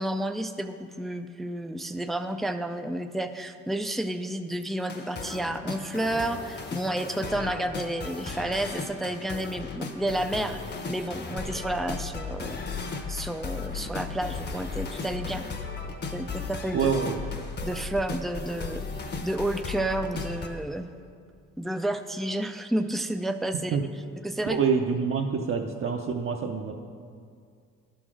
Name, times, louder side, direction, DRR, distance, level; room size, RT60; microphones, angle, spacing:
voice 1, 0.0-10.6 10.9-12.6 13.1-15.5 16.1-16.9 17.6-18.8 19.2-20.9 21.6-23.8 24.2-24.6, right 1 dB, ahead, 8 dB, 0.3 m, -31 dB
sound 1, 4.8-20.5, left 4 dB, 35° left, 0.9 m, -36 dB
voice 2, 16.7-17.2 23.7-23.8 24.5-26.7, right 6 dB, 45° right, 2 dB, 0.6 m, -26 dB
11.0 x 3.9 x 6.1 m, 2.2 s
cardioid pair, 90°, 30 cm